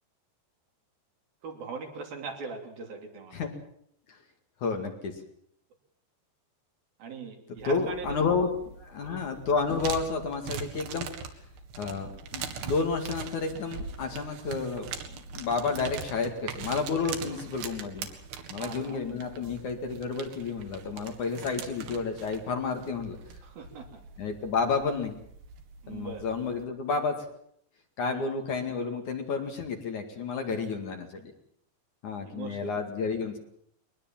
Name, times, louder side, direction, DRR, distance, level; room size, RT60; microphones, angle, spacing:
voice 1, 1.4-3.4 7.0-8.5 9.0-9.3 17.3-17.5 18.5-19.0 23.4-24.0 25.8-26.3 28.1-28.3 30.4-30.8 32.2-32.7, right 4 dB, 60° right, 3 dB, 4.6 m, -41 dB
voice 2, 4.6-5.1 7.6-8.5 8.8-11.1 11.8-18.1 18.5-23.2 24.2-25.1 25.9-27.2 28.0-31.3 32.0-33.4, left 4 dB, 50° left, 5 dB, 3.3 m, -31 dB
sound 1, 7.6-26.6, right 6 dB, 80° right, 4.0 m, -42 dB
22.5 x 20.5 x 7.3 m, 0.67 s
omnidirectional pair, 4.8 m